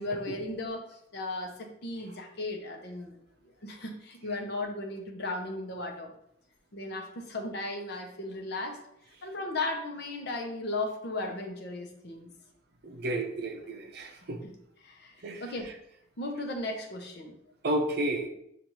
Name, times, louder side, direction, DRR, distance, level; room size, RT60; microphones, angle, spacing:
voice 1, 0.0-3.2 3.6-6.1 6.7-8.8 9.2-12.3 14.2-14.5 14.8-15.7 16.2-17.3, left 2 dB, 55° left, 2 dB, 0.7 m, -36 dB
voice 2, 12.8-14.4 15.2-15.4 17.6-18.3, right 1 dB, 55° right, 4 dB, 0.6 m, -31 dB
6.7 x 2.5 x 3.0 m, 0.76 s
head